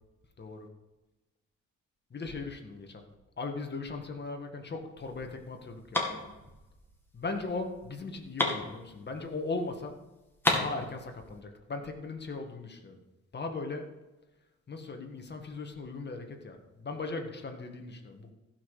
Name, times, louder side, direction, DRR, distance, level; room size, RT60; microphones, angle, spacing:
voice 1, 0.4-0.7 2.1-3.1 3.4-6.0 7.1-10.0 10.5-13.0 13.3-13.9 14.7-18.3, left 3 dB, 35° left, 4 dB, 1.8 m, -38 dB
sound 1, 5.0-9.5 9.8-9.9 10.1-11.4, left 1 dB, 5° left, 2.2 m, -33 dB
15.0 x 6.1 x 5.0 m, 1.1 s
cardioid pair, 90°, 30 cm